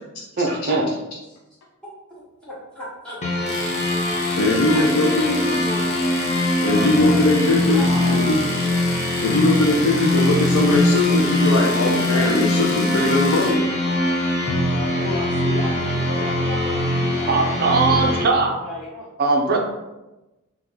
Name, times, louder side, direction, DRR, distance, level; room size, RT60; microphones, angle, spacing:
voice 1, 0.4-0.8 17.3-18.5 19.2-19.6, right 3 dB, 45° right, 1 dB, 0.5 m, -19 dB
voice 2, 2.4-3.5 4.0-7.3 7.6-8.2 14.4-19.1, equal, 5° left, -10 dB, 1.2 m, -34 dB
sound 1, 3.2-18.2, left 1 dB, 30° left, 0.4 m, -22 dB
Domestic sounds home sounds, 3.5-13.6, left 2 dB, 55° left, 0.8 m, -33 dB
voice 3, 4.3-5.4 6.6-8.4 9.2-13.6, left 2 dB, 85° left, -2 dB, 0.5 m, -20 dB
2.9 x 2.3 x 3.6 m, 1.0 s
head